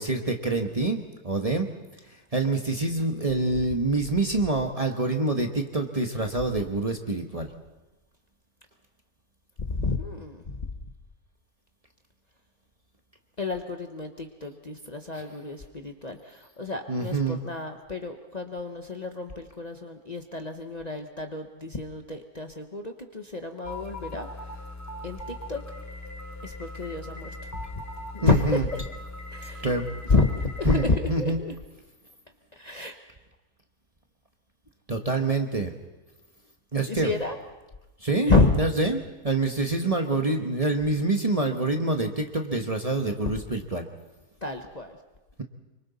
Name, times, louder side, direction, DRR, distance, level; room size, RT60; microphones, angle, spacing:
voice 1, 0.0-1.7 2.3-7.5 16.9-17.4 28.2-28.6 29.6-29.9 30.6-31.4 34.9-35.7 36.7-37.1 38.0-43.8, right 2 dB, 25° right, 4 dB, 1.1 m, -26 dB
voice 2, 9.6-10.8 13.4-24.7 25.0-25.6 26.4-27.6 28.1-28.9 29.3-29.7 30.1-31.5 32.5-33.0 36.8-37.4 38.3-38.6 44.4-45.0, left 3 dB, 30° left, 4 dB, 1.0 m, -29 dB
sound 1, 23.6-30.9, left 1 dB, 15° left, 0.7 m, -40 dB
26.0 x 24.0 x 4.1 m, 1.1 s
omnidirectional pair, 1.6 m